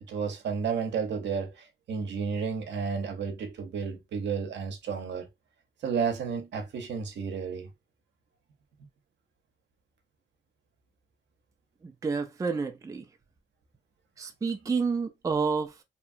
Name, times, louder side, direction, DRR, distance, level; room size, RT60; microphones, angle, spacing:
voice 1, 0.1-5.3 5.8-7.7, right 6 dB, 65° right, 0.8 m, -32 dB
voice 2, 11.8-13.0 14.2-15.7, right 5 dB, 15° right, 0.4 m, -29 dB
2.9 x 2.3 x 2.5 m
cardioid pair, 90°, 20 cm